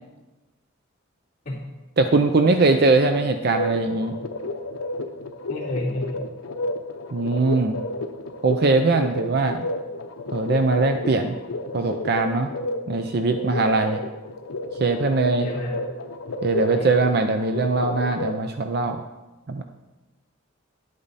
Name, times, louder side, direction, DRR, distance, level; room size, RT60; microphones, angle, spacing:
voice 1, 2.0-4.2 7.1-7.8 8.4-9.6 10.3-11.3 11.7-12.5 12.9-14.0 14.8-15.5 16.4-19.0 19.5-19.6, right 3 dB, 50° right, 7 dB, 0.5 m, -21 dB
sound 1, 3.1-18.4, left 2 dB, 85° left, 0.7 m, -32 dB
voice 2, 5.5-6.2 15.4-15.8 16.7-16.9, left 1 dB, 35° left, -12 dB, 2.7 m, -29 dB
11.0 x 8.6 x 4.1 m, 1.1 s
head